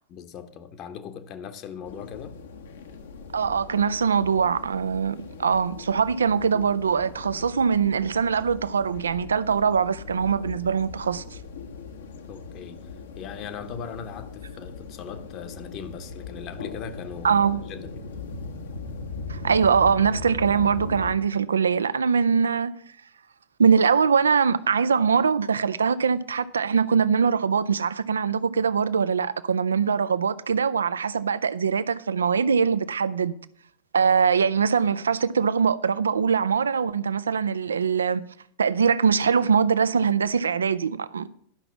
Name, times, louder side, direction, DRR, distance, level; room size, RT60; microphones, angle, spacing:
voice 1, 0.1-2.4 12.3-12.9 13.2-18.0 19.4-19.6, left 7 dB, 35° left, 1.0 m, -39 dB
outdoors ambient near airport plane hum, 1.9-21.2, left 4 dB, 65° left, 1.2 m, -39 dB
voice 2, 3.3-11.4 17.2-17.6 19.3-22.7 23.6-33.4 33.9-38.2 38.6-41.3, right 6 dB, 70° right, 0.5 m, -22 dB
11.5 x 5.9 x 7.0 m
figure-of-eight pair, 90°, 0 cm